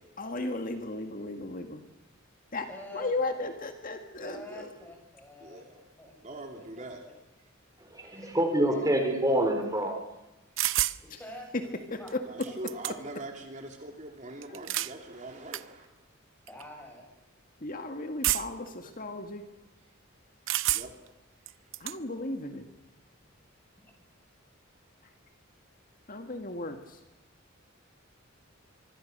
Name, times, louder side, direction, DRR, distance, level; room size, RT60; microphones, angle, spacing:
voice 1, 0.2-1.8 2.5-2.7 2.9-4.7 11.1-11.3 11.5-12.5 12.9-13.0 14.5-14.6 17.6-19.5 21.8-22.7 26.1-27.0, left 2 dB, 45° left, 1.9 m, -35 dB
voice 2, 2.7-3.5 4.2-7.1 8.0-8.3 8.6-8.9 11.1-11.5 12.0-12.1 12.5-12.6 16.5-17.1, left 1 dB, 10° left, 7.2 m, -47 dB
voice 3, 5.4-5.8 6.2-7.0 12.3-15.9 20.7-20.9, right 2 dB, 35° right, 3.0 m, -42 dB
voice 4, 7.8-10.0, right 1 dB, 20° right, 4.4 m, -26 dB
sound 1, 10.6-11.0 12.1-12.2 12.4-13.2 14.4-14.9 15.5-15.6 16.5-16.6 18.2-18.7 20.5-21.1 21.5-22.0, right 14 dB, 70° right, 0.7 m, -29 dB
24.5 x 24.0 x 6.7 m
head